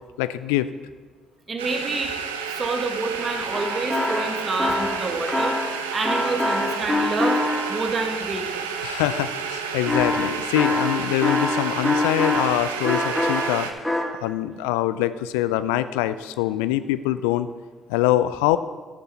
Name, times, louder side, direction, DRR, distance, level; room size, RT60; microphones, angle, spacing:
voice 1, 0.2-0.7 8.8-13.7 14.0-17.5 17.9-18.6, left 14 dB, 80° left, 13 dB, 0.3 m, -24 dB
voice 2, 1.5-2.1 2.5-5.6 5.9-7.4 7.7-8.6, right 3 dB, 40° right, 4 dB, 1.7 m, -28 dB
sound 1, 1.6-13.7, right 6 dB, 85° right, 0.6 m, -31 dB
sound 2, 3.2-8.0 9.9-12.6 12.8-14.0, left 1 dB, 5° left, 2.1 m, -24 dB
9.9 x 8.3 x 4.3 m, 1.4 s
hypercardioid pair, 50°, 0 cm